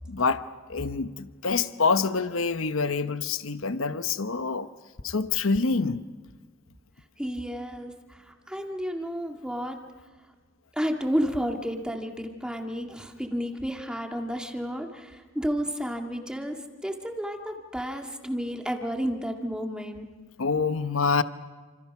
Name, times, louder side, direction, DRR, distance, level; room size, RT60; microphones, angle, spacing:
voice 1, 0.1-0.4 0.7-4.7 5.0-6.0 20.4-21.2, left 4 dB, 70° left, 1.0 m, -26 dB
voice 2, 7.2-9.8 10.7-20.1, equal, 5° right, 1.9 m, -31 dB
29.5 x 26.5 x 6.0 m
head